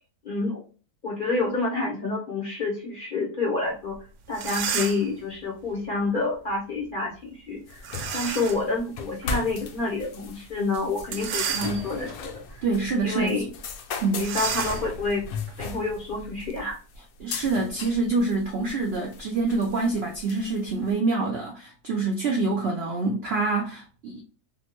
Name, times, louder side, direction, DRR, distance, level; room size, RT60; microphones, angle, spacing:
voice 1, 0.2-0.6 1.0-4.0 4.3-7.8 8.1-12.6 13.0-13.5 14.1-15.2 15.6-16.8, left 3 dB, 45° left, 0.6 m, -28 dB
sound 1, 3.9-4.0 4.3-5.2 7.8-8.7 9.2-9.3 11.0-12.1 12.7-12.9 13.1-13.3 14.2-16.6, right 7 dB, 90° right, 1.2 m, -32 dB
sound 2, 7.7-20.9, left 4 dB, 70° left, 0.9 m, -38 dB
voice 2, 12.6-13.5 14.0-14.3 17.2-24.2, right 3 dB, 70° right, 0.6 m, -26 dB
3.5 x 2.1 x 2.9 m
omnidirectional pair, 1.7 m